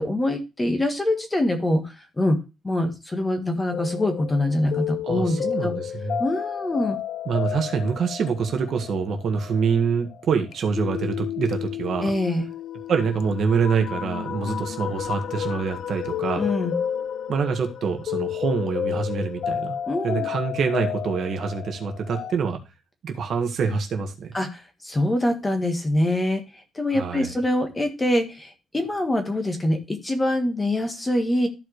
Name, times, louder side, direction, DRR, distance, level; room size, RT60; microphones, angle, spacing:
voice 1, 0.0-2.4 2.6-5.4 5.6-5.7 6.2-7.0 12.0-12.4 16.4-16.7 19.9-20.2 24.3-26.4 26.7-31.5, left 1 dB, 15° left, 6 dB, 1.5 m, -24 dB
sound 1, 3.7-22.3, left 9 dB, 50° left, 0.5 m, -31 dB
voice 2, 5.0-6.2 7.2-12.1 12.9-16.5 17.3-19.8 20.0-22.6 23.0-24.3 26.9-27.3, right 5 dB, 45° right, 4 dB, 1.7 m, -25 dB
14.0 x 4.9 x 3.1 m, 0.27 s
cardioid pair, 175°, 0 cm